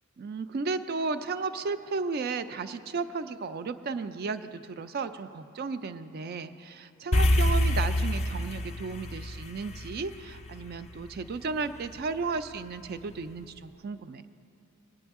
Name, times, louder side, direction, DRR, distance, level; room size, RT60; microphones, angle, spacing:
voice 1, 0.2-14.2, right 4 dB, 45° right, 11 dB, 0.4 m, -34 dB
sound 1, 7.1-11.6, left 1 dB, 30° left, 0.6 m, -27 dB
19.5 x 9.4 x 3.6 m, 2.7 s
head